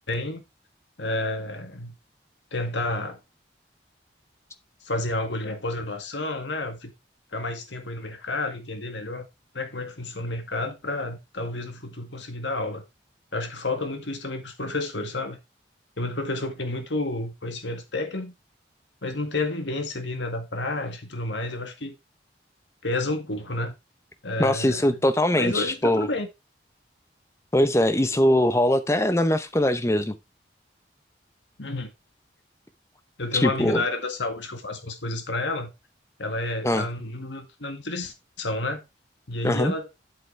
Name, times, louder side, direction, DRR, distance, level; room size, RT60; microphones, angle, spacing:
voice 1, 0.1-0.4 1.0-1.9 2.5-3.2 4.8-6.9 7.3-9.3 9.5-12.8 13.3-15.4 16.0-18.3 19.0-21.9 22.8-23.7 24.2-25.0 25.3-26.3 31.6-31.9 33.2-35.7 36.2-38.8 39.3-39.9, left 2 dB, 85° left, 2.0 m, -30 dB
voice 2, 24.4-26.1 27.5-30.1 33.3-33.8 36.6-36.9 39.4-39.7, left 1 dB, 15° left, 0.7 m, -21 dB
8.1 x 8.0 x 3.3 m
head